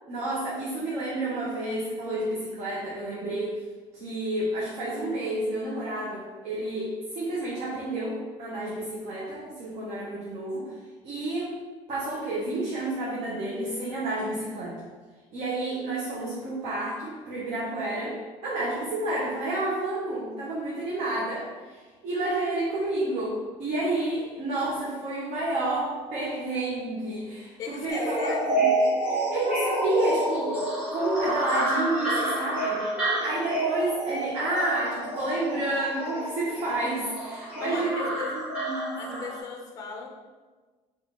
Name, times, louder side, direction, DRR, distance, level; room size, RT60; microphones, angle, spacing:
voice 1, 0.0-3.6 3.9-10.7 11.0-11.6 11.9-14.9 15.3-18.2 18.4-28.7 29.3-32.8 33.2-39.2, right 2 dB, 60° right, -6 dB, 0.7 m, -30 dB
voice 2, 27.6-28.6 37.6-40.1, left 5 dB, 30° left, 0 dB, 0.4 m, -37 dB
sound 1, 27.9-39.4, right 1 dB, 10° right, 1.3 m, -29 dB
4.1 x 2.4 x 2.8 m, 1.4 s
cardioid pair, 160°, 12 cm